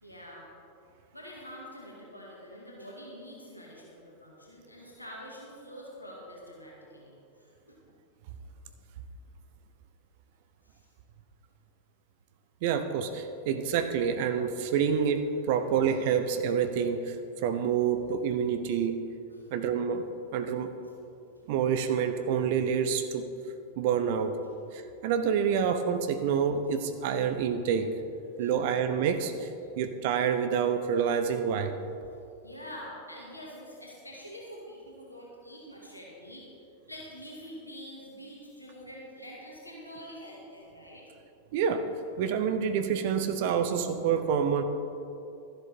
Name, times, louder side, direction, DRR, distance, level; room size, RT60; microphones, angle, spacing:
voice 1, 0.0-0.5 1.1-7.8 10.6-10.9 19.3-19.5 28.3-28.6 32.4-36.5 36.9-41.1, equal, 85° left, -3 dB, 2.1 m, -46 dB
voice 2, 12.6-19.0 19.5-20.0 20.3-20.7 21.5-23.3 23.8-24.4 24.7-27.9 28.4-29.5 29.8-31.7 41.5-41.8 42.2-44.6, right 7 dB, 50° right, 9 dB, 0.8 m, -27 dB
13.0 x 11.5 x 4.3 m, 2.7 s
figure-of-eight pair, 90°, 0 cm